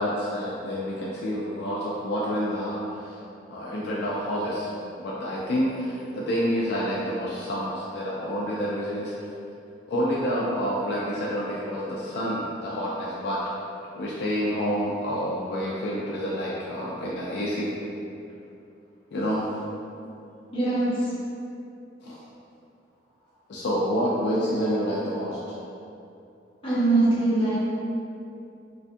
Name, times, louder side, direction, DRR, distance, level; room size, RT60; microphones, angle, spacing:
voice 1, 0.0-3.2 3.5-4.7 5.0-9.1 9.9-13.4 13.9-17.7 19.1-19.4 22.0-22.2 23.5-25.6, equal, 65° left, -6 dB, 0.3 m, -28 dB
voice 2, 20.5-21.1 26.6-27.6, right 2 dB, 30° left, -9 dB, 0.7 m, -22 dB
2.5 x 2.3 x 2.5 m, 2.6 s
head